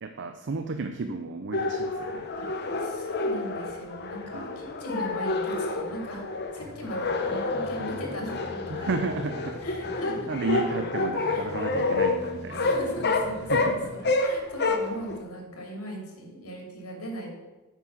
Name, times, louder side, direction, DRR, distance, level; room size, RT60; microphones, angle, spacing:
voice 1, 0.0-2.3 2.7-2.9 4.3-4.6 8.7-9.9 10.3-12.8 13.5-14.2, right 3 dB, 55° right, 7 dB, 0.6 m, -33 dB
sound 1, 1.5-15.2, left 3 dB, 50° left, 0.9 m, -29 dB
voice 2, 2.8-6.2 6.5-8.8 9.6-10.3 11.3-11.5 12.6-17.3, equal, 75° left, 1 dB, 2.8 m, -39 dB
sound 2, 6.6-14.0, right 1 dB, 30° left, 3.8 m, -44 dB
9.2 x 6.0 x 6.3 m, 1.2 s
head